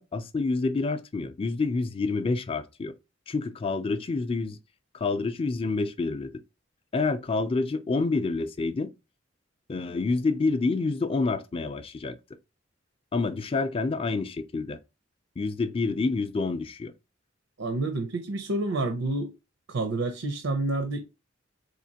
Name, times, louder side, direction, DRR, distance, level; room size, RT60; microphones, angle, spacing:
voice 1, 0.0-2.9 3.3-4.6 4.9-6.3 6.9-8.9 9.7-12.2 13.1-14.8 15.4-16.9, left 3 dB, 30° left, 0.4 m, -28 dB
voice 2, 17.6-19.3 19.7-21.0, right 2 dB, 90° right, 0.6 m, -29 dB
4.3 x 2.8 x 2.8 m
head